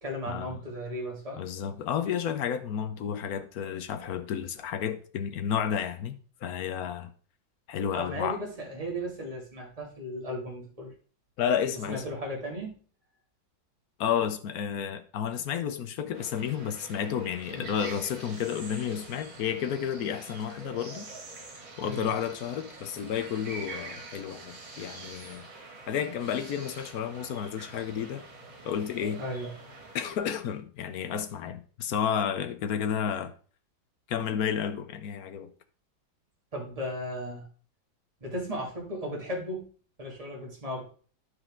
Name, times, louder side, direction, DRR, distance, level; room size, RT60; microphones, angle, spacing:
voice 1, 0.0-1.4 7.9-10.9 11.7-12.8 17.5-17.7 21.8-22.1 29.2-29.5 36.5-37.5 38.2-39.7 40.0-40.8, equal, 20° right, 2.4 m, -36 dB
voice 2, 1.4-6.1 6.4-7.1 7.7-8.4 11.4-12.0 14.0-21.1 21.8-25.4 25.9-28.3 28.6-29.2 29.9-33.3 34.1-35.5, left 8 dB, 65° left, 0.9 m, -31 dB
sound 1, 16.1-30.2, right 3 dB, 75° right, 2.7 m, -45 dB
11.5 x 4.9 x 3.7 m
omnidirectional pair, 2.1 m